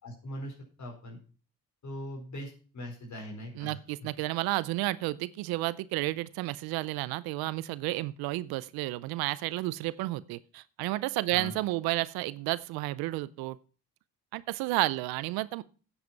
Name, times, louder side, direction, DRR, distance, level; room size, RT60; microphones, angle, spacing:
voice 1, 0.0-1.2 1.8-4.1 11.3-11.5, equal, 50° left, 0 dB, 4.6 m, -41 dB
voice 2, 3.6-13.6 14.3-15.6, right 18 dB, 90° right, 18 dB, 0.6 m, -31 dB
9.5 x 8.0 x 5.8 m, 0.37 s
supercardioid pair, 65°, 36 cm